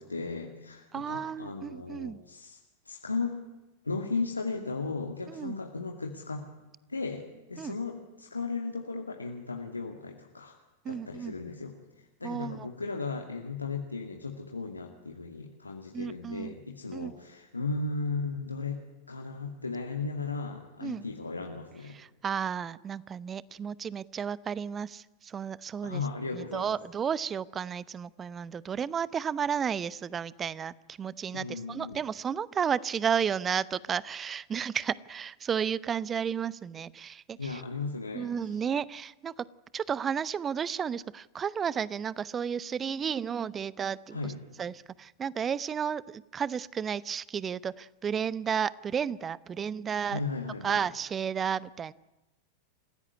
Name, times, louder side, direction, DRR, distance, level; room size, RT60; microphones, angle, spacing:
voice 1, 0.0-2.6 2.8-3.4 3.8-6.5 6.9-10.6 10.9-22.0 25.8-26.7 31.3-32.0 37.4-38.3 44.1-44.4 50.0-50.8, left 4 dB, 80° left, 2 dB, 2.3 m, -36 dB
voice 2, 0.9-2.2 5.3-5.6 7.6-7.7 10.8-11.3 12.2-12.7 15.9-16.6 16.9-17.1 20.8-21.0 21.9-26.0 26.3-37.6 38.1-39.3 39.7-44.2 44.6-50.2 50.6-51.9, right 7 dB, 20° right, 20 dB, 0.8 m, -32 dB
28.5 x 16.0 x 9.7 m, 1.0 s
figure-of-eight pair, 90°, 0 cm